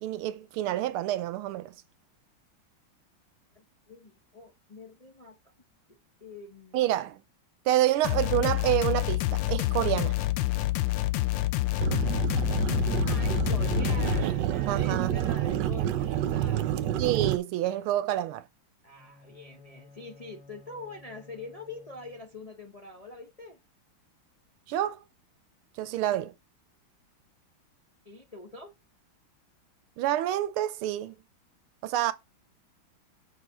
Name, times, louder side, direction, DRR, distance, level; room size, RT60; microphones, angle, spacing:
voice 1, 0.0-1.8 6.7-7.2 7.7-10.2 14.7-15.1 17.0-18.4 24.7-25.0 25.8-26.3 30.0-31.2 31.8-32.1, right 13 dB, 90° right, 1.6 m, -28 dB
voice 2, 3.5-5.4 5.9-7.0 13.0-16.8 18.8-23.6 28.0-28.7, left 3 dB, 30° left, 0.7 m, -45 dB
sound 1, 8.0-14.2, left 16 dB, 75° left, 1.2 m, -27 dB
sound 2, 11.8-17.4, right 11 dB, 70° right, 1.2 m, -28 dB
Bowed string instrument, 18.9-22.6, left 2 dB, 50° left, 3.2 m, -55 dB
6.9 x 4.1 x 5.5 m
omnidirectional pair, 2.3 m